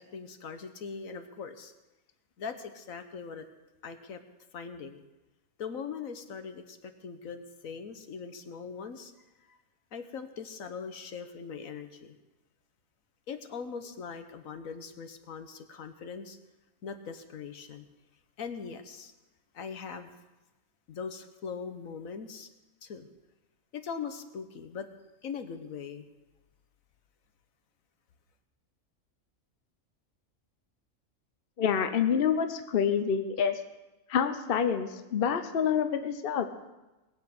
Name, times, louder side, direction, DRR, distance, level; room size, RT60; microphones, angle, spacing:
voice 1, 0.0-1.7 2.4-3.4 3.8-4.2 4.5-5.0 5.6-9.1 9.4-9.6 9.9-12.2 13.3-16.4 16.8-17.8 18.4-19.1 19.5-20.1 20.9-22.5 22.8-23.1 23.7-24.9 25.2-26.1, left 6 dB, 75° left, 8 dB, 1.4 m, -41 dB
voice 2, 31.6-33.6 34.1-36.5, left 7 dB, 45° left, 8 dB, 1.0 m, -27 dB
20.0 x 8.3 x 6.5 m, 1.1 s
omnidirectional pair, 1.4 m